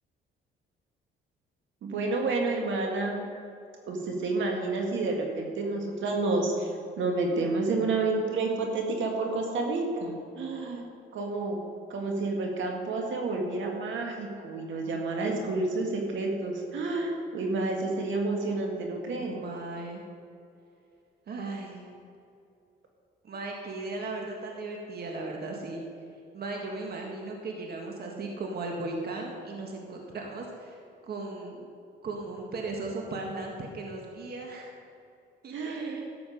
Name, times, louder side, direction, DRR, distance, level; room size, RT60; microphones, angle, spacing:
voice 1, 1.8-3.3 3.9-6.7 7.0-10.8 11.1-11.6 11.9-19.4 35.5-36.0, right 3 dB, 75° right, 1 dB, 1.9 m, -29 dB
voice 2, 10.3-10.8 19.2-20.1 21.3-21.9 23.2-25.8 26.3-31.7 32.0-34.7 35.4-36.0, right 3 dB, 55° right, 1 dB, 1.7 m, -37 dB
12.5 x 7.8 x 5.3 m, 2.6 s
cardioid pair, 90°, 20 cm